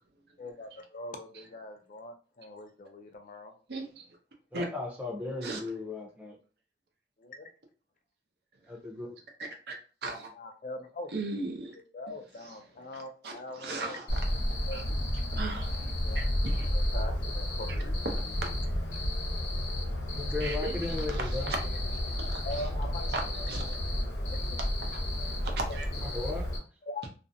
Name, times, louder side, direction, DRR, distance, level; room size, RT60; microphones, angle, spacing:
voice 1, 0.4-3.5 7.2-7.5 10.4-11.1 11.9-14.0 14.6-15.1 16.0-16.2 16.7-18.0 22.4-23.1 24.3-24.6 26.9-27.0, left 1 dB, 45° left, 0.4 m, -42 dB
voice 2, 3.7-4.1 4.5-4.7 5.4-5.6 9.7-9.8 10.0-10.3 11.1-11.8 12.4-12.5 12.9-14.8 15.3-16.8 18.1-18.5 20.4-21.6 21.9-22.7 23.0-23.8 24.9-25.9, right 3 dB, 65° right, 0.6 m, -38 dB
voice 3, 4.5-6.4 8.7-9.1 18.9-19.0 20.1-21.5 26.1-26.5, left 3 dB, 10° right, 0.6 m, -36 dB
Cricket, 14.1-26.6, left 1 dB, 75° left, 0.8 m, -31 dB
2.4 x 2.0 x 2.6 m
head